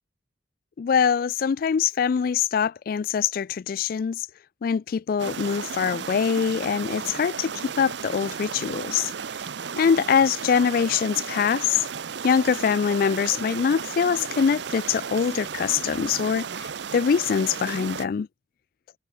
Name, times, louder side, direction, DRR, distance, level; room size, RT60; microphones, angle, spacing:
voice 1, 0.8-4.3 4.6-9.1 9.8-11.8 12.2-18.3, left 7 dB, 50° left, 0.3 m, -23 dB
sound 1, 5.2-18.1, right 6 dB, 70° right, 0.7 m, -34 dB
head